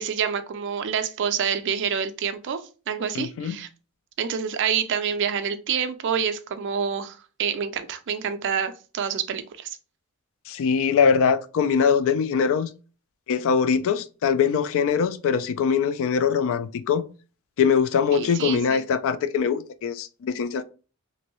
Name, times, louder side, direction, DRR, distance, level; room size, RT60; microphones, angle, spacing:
voice 1, 0.0-2.6 2.9-3.7 4.2-9.8 18.1-18.8, right 7 dB, 55° right, 0.4 m, -27 dB
voice 2, 3.1-3.6 10.5-12.7 13.3-17.0 17.6-20.6, left 6 dB, 65° left, 0.3 m, -22 dB
3.0 x 2.6 x 2.9 m
head